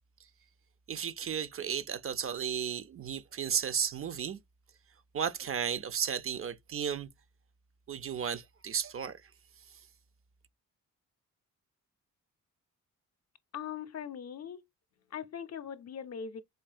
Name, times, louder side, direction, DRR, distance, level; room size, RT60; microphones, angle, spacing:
voice 1, 0.9-4.4 5.1-7.1 7.9-9.3, right 8 dB, 40° right, 0.5 m, -34 dB
voice 2, 13.5-14.6 15.1-16.4, left 8 dB, 50° left, 0.6 m, -40 dB
4.4 x 2.7 x 2.4 m
cardioid pair, 70°, 33 cm